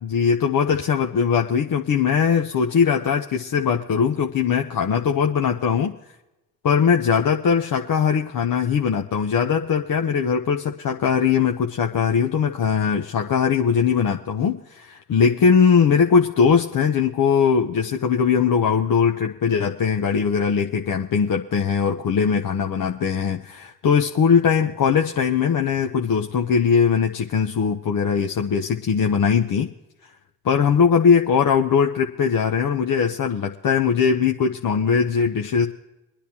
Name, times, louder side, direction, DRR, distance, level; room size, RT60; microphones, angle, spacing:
voice 1, 0.0-5.9 6.6-29.7 30.4-35.7, left 6 dB, 45° left, 3 dB, 0.9 m, -20 dB
24.0 x 10.0 x 2.9 m, 1.0 s
hypercardioid pair, 50°, 46 cm